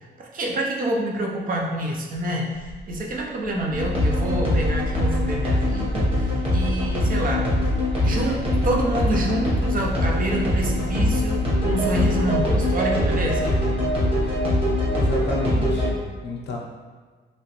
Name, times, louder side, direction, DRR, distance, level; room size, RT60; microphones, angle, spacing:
voice 1, 0.0-7.4 8.0-13.4, right 1 dB, 45° right, -1 dB, 0.5 m, -27 dB
sound 1, 2.5-5.7 6.7-10.3, left 1 dB, 80° right, 1.0 m, -37 dB
sound 2, 3.7-15.9, left 1 dB, 30° right, 1.1 m, -22 dB
voice 2, 14.9-16.6, left 2 dB, 60° left, -1 dB, 0.6 m, -32 dB
3.0 x 2.8 x 2.9 m, 1.4 s
cardioid pair, 135°, 20 cm